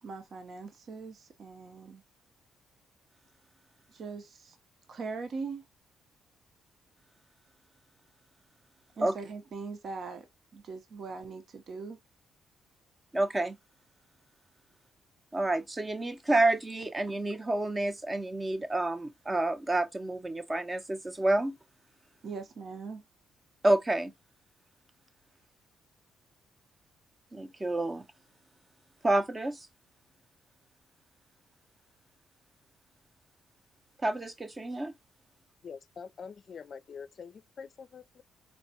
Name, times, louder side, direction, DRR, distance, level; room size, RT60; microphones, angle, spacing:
voice 1, 0.0-2.0 3.9-4.6 4.9-5.6 9.0-10.3 10.5-12.0 22.2-23.0, right 4 dB, 55° right, 0.8 m, -41 dB
voice 2, 13.1-13.6 15.3-21.6 23.6-24.1 27.3-28.0 29.0-29.6 34.0-34.9, right 2 dB, 20° right, 0.6 m, -29 dB
voice 3, 35.6-38.2, left 6 dB, 50° left, 0.5 m, -45 dB
4.3 x 2.3 x 2.8 m
cardioid pair, 90°, 0 cm